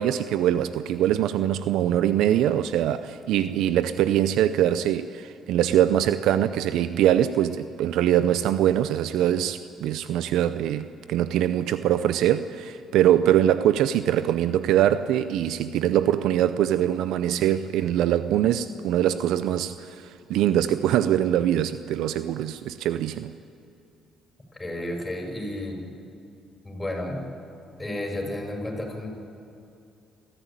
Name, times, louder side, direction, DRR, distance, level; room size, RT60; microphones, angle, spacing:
voice 1, 0.0-23.3, right 11 dB, 80° right, 0.6 m, -23 dB
voice 2, 24.5-25.8 26.6-27.3 27.8-29.1, left 1 dB, 15° left, 6.9 m, -32 dB
27.0 x 14.5 x 9.1 m
supercardioid pair, 70°, 0 cm